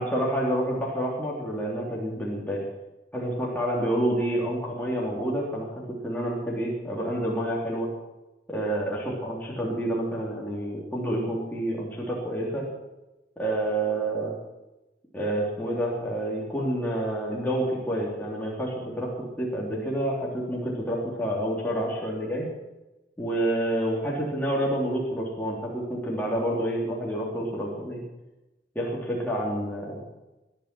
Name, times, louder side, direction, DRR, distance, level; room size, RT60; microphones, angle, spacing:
voice 1, 0.0-2.6 3.1-7.9 8.5-12.6 13.4-14.4 15.1-19.1 19.4-22.5 23.2-28.0 28.8-30.0, right 1 dB, 10° left, -4 dB, 3.5 m, -28 dB
20.5 x 11.5 x 6.2 m, 1.0 s
head